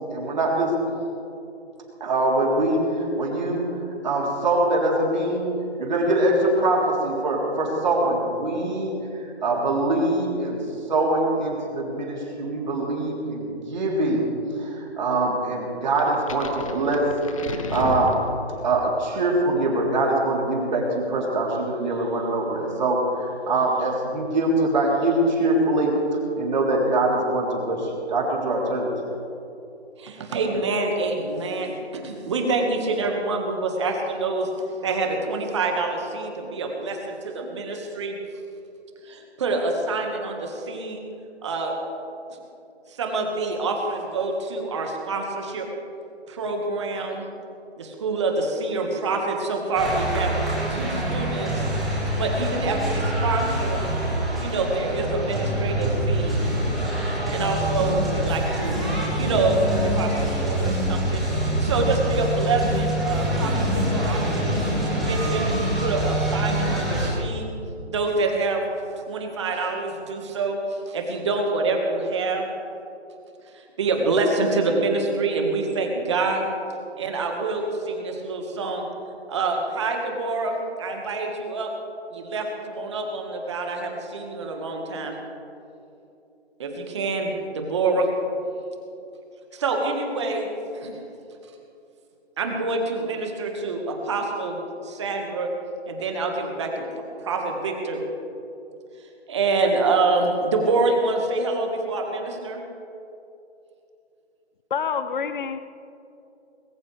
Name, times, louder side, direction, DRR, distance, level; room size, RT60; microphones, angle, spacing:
voice 1, 0.1-0.7 2.0-3.6 4.0-5.5 5.8-8.9 9.4-10.6 10.9-14.3 14.6-17.0 17.4-18.1 18.6-25.9 26.4-28.9, right 2 dB, 40° right, -2 dB, 3.7 m, -23 dB
sound 1, 16.0-18.8, left 3 dB, 30° left, 1.0 m, -32 dB
voice 2, 30.0-34.5 34.8-38.2 39.0-41.0 41.4-41.7 42.9-45.7 46.3-47.3 47.8-50.3 50.7-51.6 52.2-53.9 54.4-56.4 57.3-58.8 59.2-64.6 65.0-65.5 65.8-67.5 67.9-68.6 69.1-72.5 73.5-76.4 77.0-78.9 79.3-81.7 82.1-85.1 86.6-88.1 89.5-90.5 90.7-91.0 92.4-95.5 95.9-96.8 97.2-98.0 99.3-102.6, right 3 dB, 25° right, 2 dB, 1.7 m, -26 dB
sound 2, 49.7-67.1, right 1 dB, ahead, 1.0 m, -25 dB
voice 3, 104.7-105.6, left 6 dB, 50° left, 11 dB, 0.6 m, -27 dB
20.5 x 18.0 x 3.4 m, 2.8 s
hypercardioid pair, 165°, 33 cm